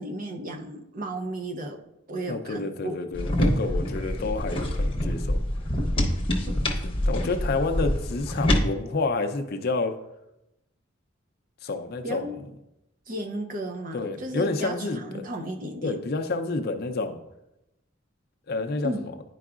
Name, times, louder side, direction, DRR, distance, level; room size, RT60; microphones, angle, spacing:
voice 1, 0.0-3.0 6.5-6.6 12.0-12.4 13.1-16.0 18.8-19.0, right 1 dB, 45° right, 4 dB, 0.6 m, -34 dB
voice 2, 2.3-5.4 6.8-9.9 11.6-12.4 13.9-15.2 15.8-17.2 18.5-19.1, left 3 dB, 50° left, 6 dB, 0.5 m, -29 dB
sound 1, 3.1-8.6, left 1 dB, 25° left, 0.8 m, -26 dB
10.0 x 4.7 x 2.4 m, 0.88 s
head